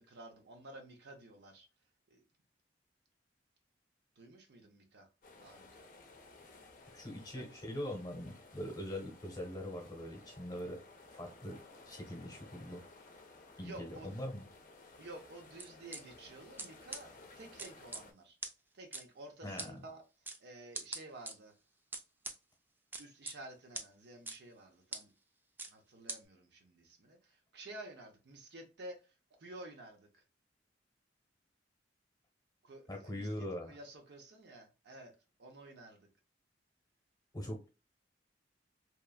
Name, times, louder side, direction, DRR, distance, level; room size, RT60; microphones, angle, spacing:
voice 1, 0.0-1.7 2.1-2.2 4.2-5.1 5.4-5.9 7.2-7.6 13.6-14.1 15.0-18.4 18.7-20.0 20.4-21.5 23.0-25.1 25.6-29.0 29.4-30.2 32.6-35.1 35.4-36.1, right 2 dB, 65° right, 0.6 m, -52 dB
sound 1, 5.2-18.1, left 3 dB, 50° left, 0.6 m, -57 dB
voice 2, 6.9-10.8 11.1-11.6 11.9-12.8 13.6-14.5 19.4-19.8 32.9-33.8 37.3-37.7, equal, 20° left, 0.9 m, -42 dB
sound 2, 15.6-16.0 16.6-16.7 16.9-17.0 17.6-18.0 18.4-18.5 18.9-19.0 19.6-19.7 20.3-20.4 20.7-21.3 21.9-22.4 22.9-23.3 23.7-23.9 24.3-24.4 24.9-25.0 25.6-25.7 26.1-26.2, right 3 dB, 10° right, 0.3 m, -41 dB
2.9 x 2.3 x 2.3 m
head